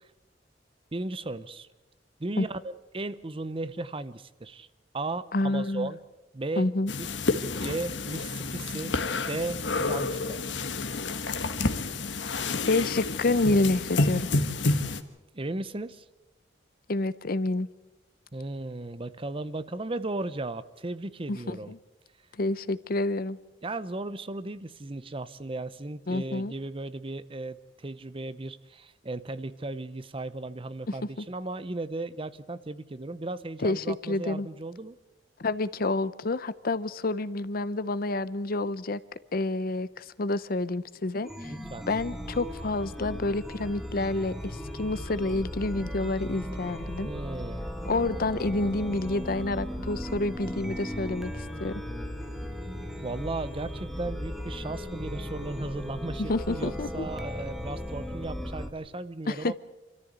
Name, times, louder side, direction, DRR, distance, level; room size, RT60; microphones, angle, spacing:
voice 1, 0.9-1.7 2.2-4.7 4.9-6.0 6.3-6.7 7.0-7.1 7.6-10.4 15.3-16.0 18.3-21.7 23.6-35.0 41.5-41.8 47.0-47.6 53.0-59.5, right 2 dB, 30° right, 15 dB, 0.7 m, -36 dB
voice 2, 5.3-5.9 6.6-6.9 12.7-14.3 16.9-17.7 21.3-21.8 22.4-23.4 26.1-26.5 31.2-31.3 33.6-34.5 35.4-39.0 39.3-41.5 41.9-47.1 47.9-51.3 51.6-51.8 56.3-57.1 59.3-59.5, left 2 dB, 55° left, 16 dB, 0.7 m, -28 dB
sound 1, 6.9-15.0, left 3 dB, 90° left, 1.4 m, -29 dB
Chime, 41.2-58.7, equal, ahead, 1.4 m, -37 dB
26.5 x 14.0 x 8.2 m, 1.0 s
head